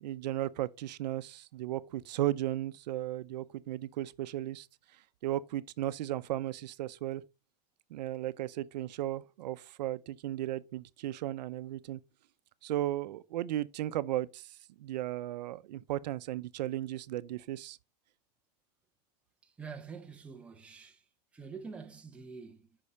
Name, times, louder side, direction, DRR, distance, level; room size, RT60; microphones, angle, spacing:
voice 1, 0.0-4.7 5.2-7.2 7.9-12.0 12.6-17.8, right 14 dB, 90° right, 0.6 m, -35 dB
voice 2, 19.4-21.0 21.3-22.8, right 5 dB, 5° right, 0.6 m, -46 dB
8.5 x 5.5 x 4.3 m
supercardioid pair, 170°, 21 cm